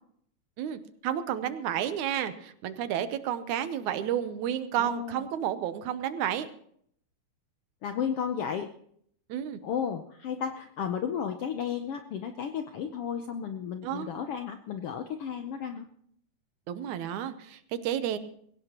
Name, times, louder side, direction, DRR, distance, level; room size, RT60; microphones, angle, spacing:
voice 1, 0.6-6.5 9.3-9.6 13.8-14.1 16.7-18.2, right 10 dB, 75° right, 11 dB, 2.2 m, -31 dB
voice 2, 4.8-5.2 7.8-8.7 9.6-15.9, left 8 dB, 75° left, 6 dB, 1.3 m, -33 dB
20.5 x 17.5 x 3.0 m, 0.65 s
omnidirectional pair, 3.5 m